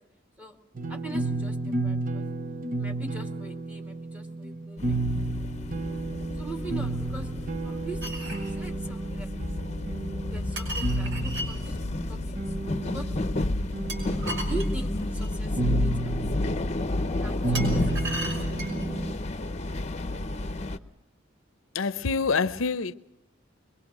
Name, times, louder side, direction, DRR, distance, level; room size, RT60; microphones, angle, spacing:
sound 1, 0.7-19.1, right 2 dB, 45° right, 1.0 m, -32 dB
voice 1, 0.9-2.2 2.7-5.0 5.8-5.9 6.4-7.3 7.6-9.3 10.3-11.8 12.1-12.4 12.8-13.3 14.3-15.9 17.2-18.5, right 2 dB, 5° right, 2.1 m, -42 dB
sound 2, 4.8-20.8, left 2 dB, 35° left, 0.9 m, -31 dB
sound 3, 8.0-8.5 10.6-11.5 13.9-15.3 17.5-18.9, right 1 dB, 60° right, 5.9 m, -36 dB
voice 2, 21.7-22.9, left 4 dB, 90° left, 0.7 m, -26 dB
23.5 x 22.5 x 6.1 m
head